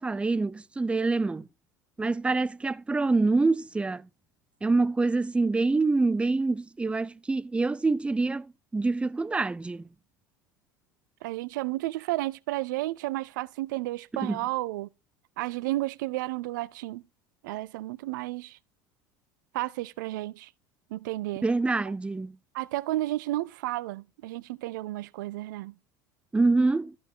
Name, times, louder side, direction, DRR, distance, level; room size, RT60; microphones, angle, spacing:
voice 1, 0.0-1.5 2.0-4.1 4.6-9.9 14.2-14.4 21.4-22.4 26.3-26.9, right 3 dB, 10° right, 0.4 m, -26 dB
voice 2, 11.2-14.9 15.4-17.0 17.4-18.6 19.5-20.5 20.9-21.5 22.5-25.7, right 17 dB, 75° right, 0.4 m, -32 dB
13.5 x 5.1 x 3.7 m
hypercardioid pair, 75°, 10 cm